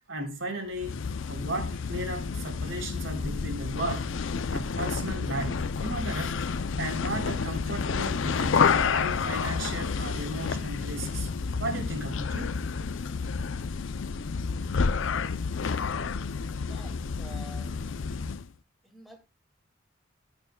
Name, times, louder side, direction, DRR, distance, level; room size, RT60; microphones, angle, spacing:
voice 1, 0.1-1.0 1.3-4.1 4.5-6.4 6.8-11.3 11.6-12.6 12.9-13.0 13.4-13.5, right 1 dB, 80° right, 3.5 m, -35 dB
sound 1, 0.7-18.5, left 5 dB, 75° left, 0.5 m, -30 dB
voice 2, 16.7-17.7 18.8-19.3, equal, ahead, 2.2 m, -49 dB
17.5 x 6.7 x 2.3 m
head